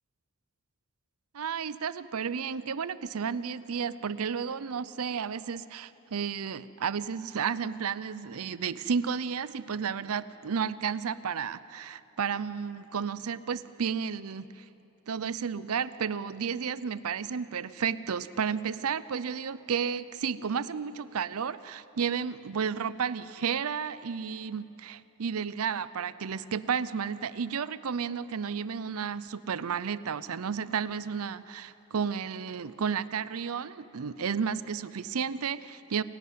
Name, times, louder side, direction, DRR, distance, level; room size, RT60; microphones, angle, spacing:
voice 1, 1.3-14.6 15.1-36.0, right 6 dB, 80° right, 16 dB, 0.6 m, -32 dB
30.0 x 11.5 x 9.3 m, 2.9 s
head